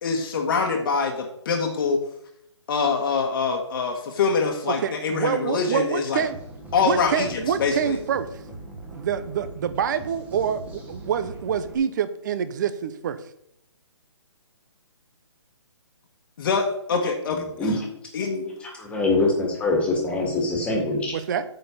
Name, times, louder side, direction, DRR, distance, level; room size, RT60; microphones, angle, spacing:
voice 1, 0.0-2.0 2.7-6.2 6.7-8.0 16.4-17.4 18.1-18.5, left 5 dB, 45° left, 2 dB, 1.4 m, -24 dB
voice 2, 4.7-6.3 6.8-8.3 8.9-13.2 21.1-21.4, right 8 dB, 40° right, 12 dB, 0.7 m, -26 dB
sound 1, 6.2-11.8, right 2 dB, 10° right, 1.4 m, -40 dB
voice 3, 17.3-17.7 18.6-21.2, left 2 dB, 5° left, -1 dB, 1.9 m, -24 dB
9.2 x 4.4 x 7.0 m, 0.75 s
hypercardioid pair, 155°, 15 cm